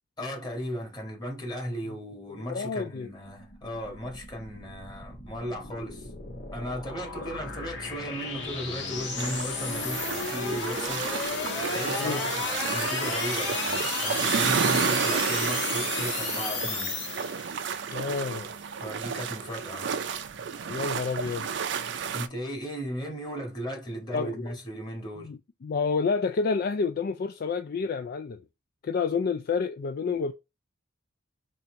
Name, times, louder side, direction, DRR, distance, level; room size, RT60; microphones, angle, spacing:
voice 1, 0.2-6.1 6.5-11.1 11.4-16.9 18.8-20.0 22.1-25.3, equal, 25° left, 1.7 m, -36 dB
voice 2, 2.3-3.1 12.0-12.2 17.9-18.5 20.7-21.5 24.1-24.6 25.2-28.4 28.8-30.3, left 5 dB, 55° left, 0.4 m, -29 dB
sound 1, 3.2-17.7, left 4 dB, 70° left, 1.6 m, -34 dB
sound 2, 9.2-22.3, right 6 dB, 65° right, 0.5 m, -31 dB
4.2 x 2.6 x 4.4 m
head